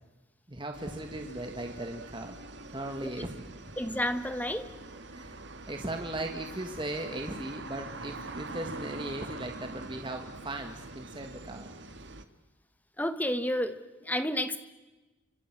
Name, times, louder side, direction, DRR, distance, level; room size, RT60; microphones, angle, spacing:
voice 1, 0.5-2.4 2.7-3.7 5.1-5.4 5.7-11.7, right 1 dB, 25° right, 4 dB, 1.8 m, -38 dB
sound 1, 0.7-12.2, right 2 dB, 55° right, 1.8 m, -44 dB
voice 2, 3.8-4.7 13.0-14.6, left 1 dB, 10° left, 10 dB, 1.3 m, -31 dB
29.5 x 25.5 x 6.1 m, 1.1 s
head